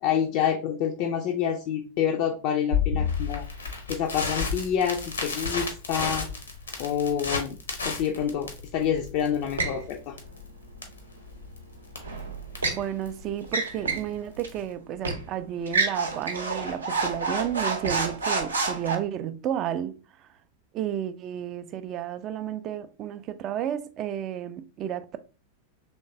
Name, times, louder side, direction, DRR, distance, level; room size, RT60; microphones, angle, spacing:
voice 1, 0.0-3.5 3.9-6.3 6.8-7.6 7.8-10.1, left 8 dB, 45° left, 0.4 m, -27 dB
Crackle, 2.7-14.7, left 5 dB, 75° left, 0.8 m, -32 dB
sound 1, 9.6-9.8 12.0-12.8 13.4-14.1 14.4-14.6 15.0-15.2 15.7-18.9, right 3 dB, 75° right, 0.6 m, -28 dB
voice 2, 12.7-20.3 20.7-25.2, right 10 dB, 35° right, 0.3 m, -32 dB
3.5 x 3.1 x 2.6 m
figure-of-eight pair, 90°, 0 cm